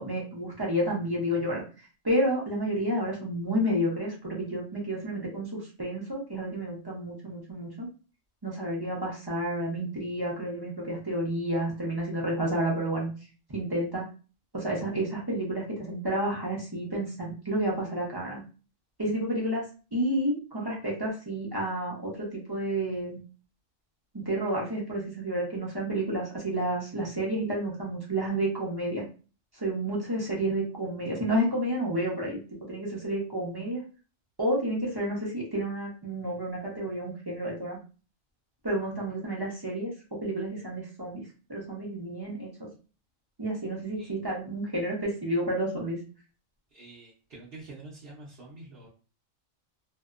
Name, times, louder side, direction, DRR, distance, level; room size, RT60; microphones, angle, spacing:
voice 1, 0.0-7.9 8.4-13.1 13.5-14.1 14.5-18.4 19.0-23.2 24.1-29.0 29.5-32.4 32.7-33.8 34.4-37.8 38.6-42.7 43.4-46.0, right 1 dB, 30° right, -4 dB, 0.4 m, -30 dB
voice 2, 46.8-48.9, right 2 dB, 55° right, -5 dB, 0.8 m, -46 dB
2.7 x 2.0 x 2.4 m, 0.35 s
omnidirectional pair, 1.4 m